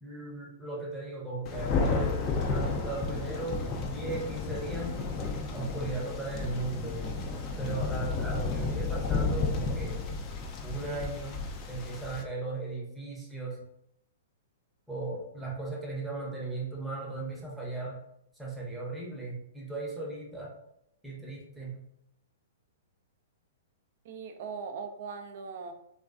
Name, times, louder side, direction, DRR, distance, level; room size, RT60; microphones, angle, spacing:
voice 1, 0.0-5.0 5.5-7.1 7.6-10.0 10.6-13.6 14.9-18.0 18.4-20.6 21.0-21.9, right 3 dB, 5° right, -4 dB, 0.7 m, -37 dB
Thunder, 1.4-12.2, left 4 dB, 35° left, 0.3 m, -32 dB
voice 2, 24.1-25.7, right 5 dB, 55° right, 7 dB, 0.4 m, -39 dB
2.4 x 2.2 x 2.3 m, 0.77 s
hypercardioid pair, 125°, 0 cm